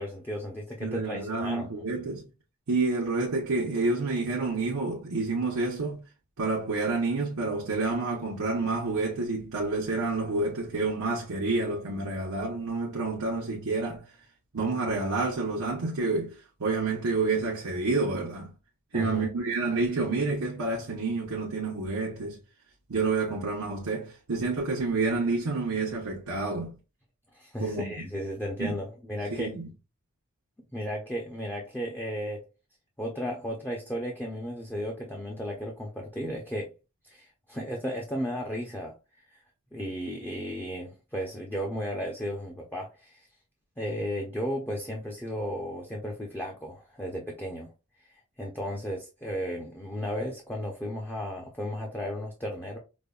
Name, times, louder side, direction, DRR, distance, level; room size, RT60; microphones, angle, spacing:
voice 1, 0.0-1.8 18.9-19.3 27.3-29.6 30.7-32.4 33.0-36.7 37.0-38.9 39.3-39.4 39.7-43.2 43.8-47.7 48.4-52.8, equal, 10° left, 0.5 m, -34 dB
voice 2, 0.8-2.2 2.7-6.0 6.4-14.0 14.5-18.5 18.9-22.4 22.9-26.7 27.6-27.8 28.6-28.7 29.3-29.7, right 3 dB, 85° right, 0.8 m, -29 dB
5.1 x 2.1 x 2.3 m
head